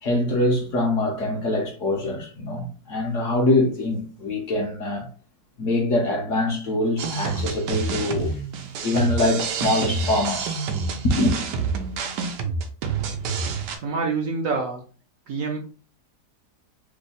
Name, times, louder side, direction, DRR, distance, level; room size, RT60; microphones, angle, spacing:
voice 1, 0.0-5.1 5.6-8.4 8.8-10.6 11.0-11.3, left 1 dB, 60° left, 0.9 m, -23 dB
sound 1, 7.0-13.8, right 4 dB, 85° right, 1.2 m, -28 dB
voice 2, 13.7-14.8 15.3-15.6, right 4 dB, 65° right, 0.8 m, -26 dB
3.3 x 2.0 x 3.9 m
omnidirectional pair, 1.8 m